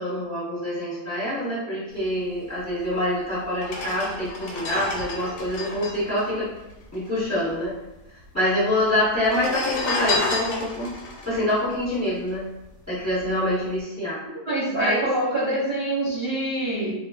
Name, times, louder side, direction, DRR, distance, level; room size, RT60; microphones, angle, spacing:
voice 1, 0.0-6.5 6.9-7.8 8.3-10.9 11.2-12.5 12.9-14.2 14.7-15.0, left 1 dB, 10° left, -10 dB, 0.9 m, -26 dB
sound 1, 2.9-3.0 3.5-7.2 7.5-7.6 7.8-8.5 9.1-12.6 13.1-13.3, left 2 dB, 75° left, 1.0 m, -30 dB
voice 2, 14.4-16.9, right 1 dB, 50° right, -10 dB, 0.8 m, -25 dB
2.4 x 2.3 x 2.3 m, 0.90 s
omnidirectional pair, 1.7 m